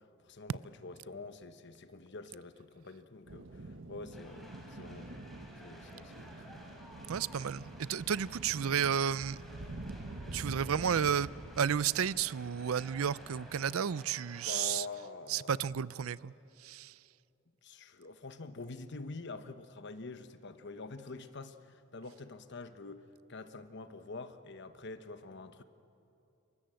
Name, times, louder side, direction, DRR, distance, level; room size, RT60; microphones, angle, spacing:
voice 1, 0.0-5.2 5.6-6.6 14.5-15.9 17.6-25.6, left 3 dB, 55° left, 10 dB, 1.1 m, -46 dB
sound 1, 3.3-13.7, right 2 dB, 60° right, 1.2 m, -47 dB
sound 2, 4.1-14.7, equal, ahead, 4.4 m, -55 dB
voice 2, 7.1-9.4 10.3-11.3 11.6-14.8 15.3-16.3 16.6-16.9, right 8 dB, 85° right, 20 dB, 0.5 m, -32 dB
28.0 x 23.0 x 7.7 m, 2.8 s
head